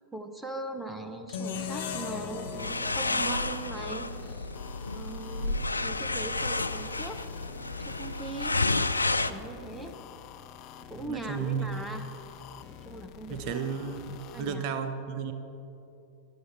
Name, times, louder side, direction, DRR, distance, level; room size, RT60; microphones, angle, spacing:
voice 1, 0.1-4.5 4.9-7.2 7.8-8.7 9.3-9.9 10.9-12.1 12.6-13.5 14.3-14.6, right 2 dB, 5° right, 6 dB, 0.7 m, -40 dB
sound 1, 1.3-4.5, left 7 dB, 60° left, 1.2 m, -38 dB
sound 2, 1.5-14.6, left 9 dB, 40° left, 0.6 m, -48 dB
sound 3, 2.4-9.3, left 3 dB, 80° left, 0.4 m, -31 dB
voice 2, 11.1-11.7 13.3-15.3, right 6 dB, 45° right, 8 dB, 0.9 m, -33 dB
14.5 x 11.0 x 4.6 m, 2.9 s
figure-of-eight pair, 90°, 0 cm